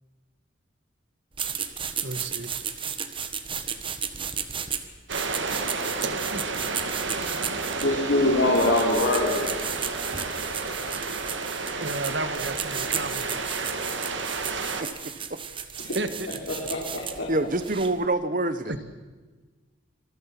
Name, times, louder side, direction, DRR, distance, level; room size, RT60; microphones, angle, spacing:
sound 1, 1.3-18.0, right 7 dB, 25° right, 1.5 m, -34 dB
voice 1, 2.0-2.5 6.0-6.9 11.8-13.7 15.9-16.3 18.7-18.8, right 2 dB, 60° right, 10 dB, 1.8 m, -33 dB
sound 2, 5.1-14.8, right 4 dB, 80° right, 2.3 m, -31 dB
voice 2, 7.8-9.6 15.8-16.0 16.5-17.3, left 1 dB, 75° left, -2 dB, 4.3 m, -24 dB
voice 3, 14.8-15.4 17.3-18.7, right 2 dB, 45° right, 13 dB, 1.4 m, -27 dB
27.0 x 21.5 x 6.1 m, 1.3 s
head